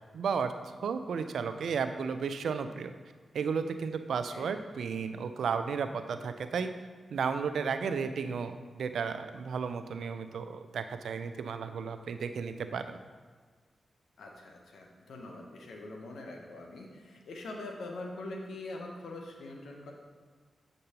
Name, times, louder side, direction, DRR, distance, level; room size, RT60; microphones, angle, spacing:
voice 1, 0.1-0.5 0.8-2.9 3.3-6.7 7.1-13.0, right 6 dB, 85° right, 9 dB, 0.3 m, -33 dB
voice 2, 4.1-4.5 14.2-19.9, left 2 dB, 85° left, 1 dB, 0.8 m, -43 dB
7.6 x 5.2 x 2.8 m, 1.5 s
supercardioid pair, 40°, 0 cm